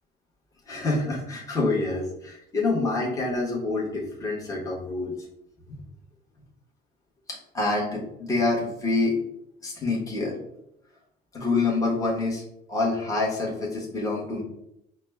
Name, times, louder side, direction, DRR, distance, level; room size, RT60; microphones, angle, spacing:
voice 1, 0.7-5.1 5.7-5.8 7.3-9.2 9.6-10.4 11.3-12.4 12.7-14.4, left 3 dB, 20° left, -4 dB, 1.2 m, -27 dB
4.9 x 2.2 x 3.4 m, 0.78 s
cardioid pair, 110°, 17 cm